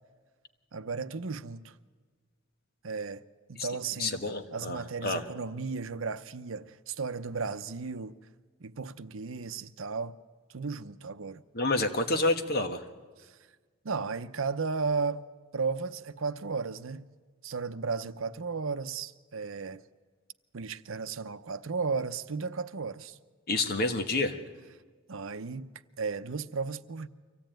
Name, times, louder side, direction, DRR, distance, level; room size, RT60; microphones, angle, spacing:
voice 1, 0.7-1.8 2.8-3.2 3.5-4.2 4.5-8.1 8.6-10.2 10.5-11.4 13.2-13.4 13.8-15.3 15.5-17.1 17.4-19.8 20.5-23.2 25.1-25.7 26.0-27.1, right 4 dB, 75° right, 0.7 m, -34 dB
voice 2, 4.0-5.2 11.5-12.8 23.5-24.3, left 2 dB, 50° left, 1.5 m, -28 dB
24.5 x 16.5 x 9.1 m
head